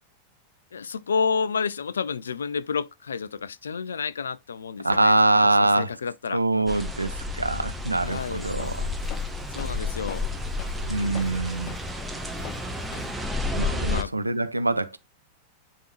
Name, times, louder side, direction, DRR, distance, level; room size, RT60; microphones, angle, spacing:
voice 1, 0.7-5.2 5.6-6.4 8.0-8.4 9.5-10.3 13.8-14.1, left 5 dB, 70° left, 0.4 m, -30 dB
voice 2, 4.8-5.9 6.3-8.9 10.9-11.7 13.6-15.0, right 2 dB, 85° right, 0.7 m, -24 dB
sound 1, 6.7-14.0, left 2 dB, 5° right, 1.3 m, -31 dB
Walk footsteps, 8.0-13.3, left 7 dB, 35° left, 1.3 m, -45 dB
10.0 x 3.7 x 3.0 m
figure-of-eight pair, 90°, 0 cm